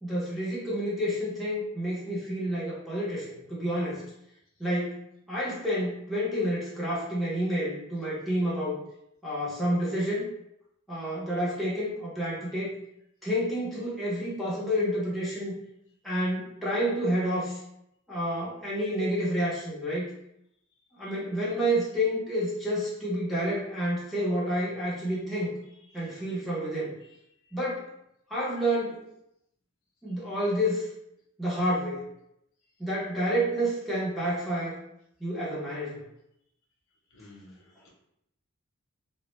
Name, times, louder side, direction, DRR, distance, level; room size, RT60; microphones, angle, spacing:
voice 1, 0.0-4.0 4.6-5.0 5.3-8.8 9.2-10.3 10.9-12.7 13.2-15.6 16.0-17.6 18.1-20.1 21.0-25.5 25.9-26.9 27.5-27.9 28.3-29.1 30.0-30.9 31.4-32.0 32.8-34.8 35.2-36.0, equal, ahead, -8 dB, 0.6 m, -29 dB
voice 2, 37.1-37.9, left 2 dB, 70° left, -2 dB, 0.6 m, -53 dB
2.1 x 2.0 x 3.0 m, 0.79 s
head